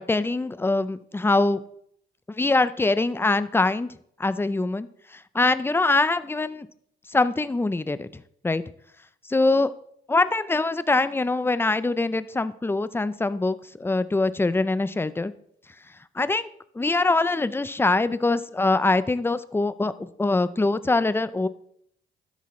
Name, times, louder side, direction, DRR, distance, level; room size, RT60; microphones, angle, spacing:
voice 1, 0.0-1.6 2.3-3.9 4.2-4.9 5.3-6.7 7.1-8.1 8.4-8.6 9.3-9.7 10.1-15.3 16.2-16.5 16.8-21.5, left 2 dB, 10° left, 14 dB, 0.5 m, -23 dB
12.0 x 10.0 x 3.2 m, 0.69 s
cardioid pair, 90°, 20 cm